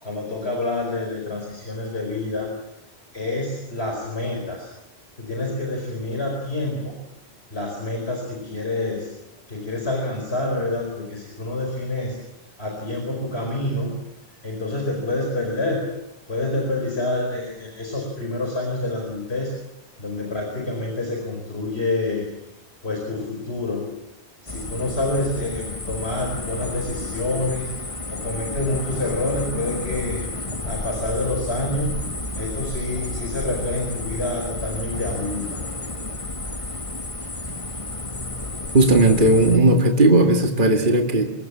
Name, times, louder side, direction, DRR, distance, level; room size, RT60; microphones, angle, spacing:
voice 1, 0.0-2.5 3.1-4.7 5.2-6.9 7.5-9.1 9.5-12.2 12.6-13.9 14.4-15.9 16.3-19.6 20.0-22.3 22.8-23.8 24.4-27.7 28.1-30.3 30.7-32.0 32.3-35.6, left 2 dB, 65° left, 1 dB, 5.0 m, -27 dB
sound 1, 24.5-39.6, left 2 dB, 30° left, 1.8 m, -31 dB
voice 2, 38.7-41.3, right 1 dB, 45° right, 4 dB, 2.3 m, -16 dB
25.0 x 21.5 x 7.4 m, 0.90 s
omnidirectional pair, 1.2 m